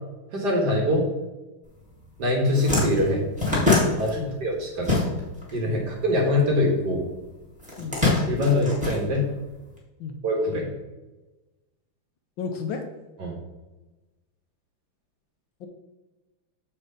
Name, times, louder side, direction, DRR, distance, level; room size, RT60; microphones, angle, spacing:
voice 1, 0.3-1.1 2.2-3.3 4.0-5.0 5.5-7.0 8.0-9.3 10.2-10.7 13.2-13.3, left 1 dB, 55° right, 0 dB, 2.0 m, -24 dB
sound 1, 1.9-2.1 2.3-5.5 5.8-7.0 7.6-9.6, left 2 dB, 5° right, 2.0 m, -24 dB
voice 2, 12.4-12.8 15.6-15.7, left 5 dB, 70° left, 4 dB, 1.4 m, -32 dB
7.1 x 4.3 x 5.0 m, 1.1 s
omnidirectional pair, 2.3 m